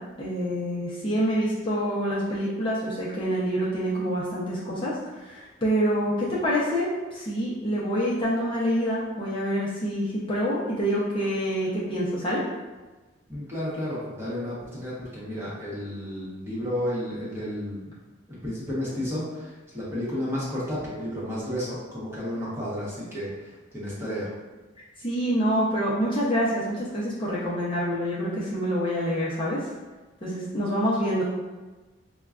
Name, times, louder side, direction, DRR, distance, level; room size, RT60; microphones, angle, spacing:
voice 1, 0.2-4.9 5.2-12.4 25.0-29.6 30.2-31.2, equal, 25° left, -8 dB, 0.6 m, -26 dB
voice 2, 13.3-17.9 18.3-24.3, equal, 10° right, -9 dB, 1.0 m, -32 dB
5.2 x 2.2 x 2.4 m, 1.2 s
head